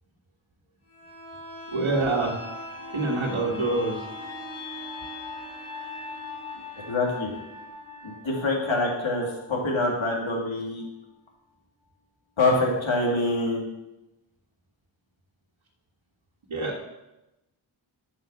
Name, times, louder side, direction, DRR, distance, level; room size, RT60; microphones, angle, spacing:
sound 1, 0.9-10.5 10.8-10.9, left 2 dB, 90° left, 2.4 m, -40 dB
voice 1, 1.7-2.4 2.9-4.1 16.5-16.8, right 2 dB, 75° right, -4 dB, 1.7 m, -26 dB
voice 2, 6.9-7.3 8.0-10.8 12.4-13.7, left 2 dB, 70° left, -1 dB, 2.5 m, -25 dB
9.6 x 6.1 x 7.0 m, 0.96 s
cardioid pair, 55°, 49 cm